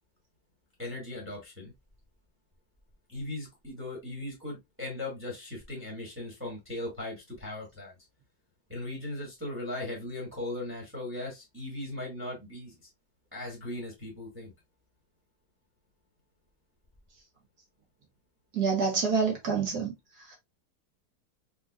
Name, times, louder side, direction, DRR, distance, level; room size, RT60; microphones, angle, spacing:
voice 1, 0.8-1.7 3.1-7.9 8.7-12.9 13.3-14.5, left 1 dB, 5° right, 1.6 m, -38 dB
voice 2, 18.5-19.9 20.2-20.4, right 5 dB, 55° right, 1.4 m, -27 dB
3.8 x 3.8 x 2.4 m
omnidirectional pair, 2.3 m